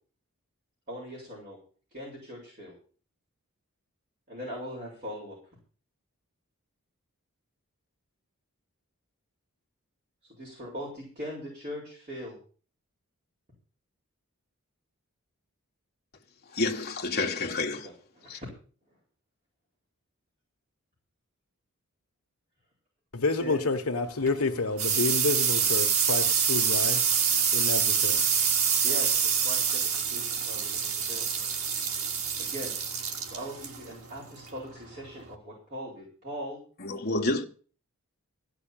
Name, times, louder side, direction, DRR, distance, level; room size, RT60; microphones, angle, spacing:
voice 1, 0.9-1.6 1.9-2.7 4.3-5.4 10.3-12.4 18.2-18.5 23.4-23.7 28.8-29.8 30.1-31.5 32.4-32.7 33.2-36.6, equal, 35° right, 7.2 m, -40 dB
voice 2, 16.5-17.9 18.3-18.4 36.8-37.4, left 2 dB, 45° left, 1.7 m, -29 dB
voice 3, 23.1-27.0 27.5-28.2, left 3 dB, 80° left, 1.3 m, -29 dB
sound 1, 24.1-35.3, right 7 dB, 75° right, 2.3 m, -27 dB
16.0 x 6.2 x 9.1 m
head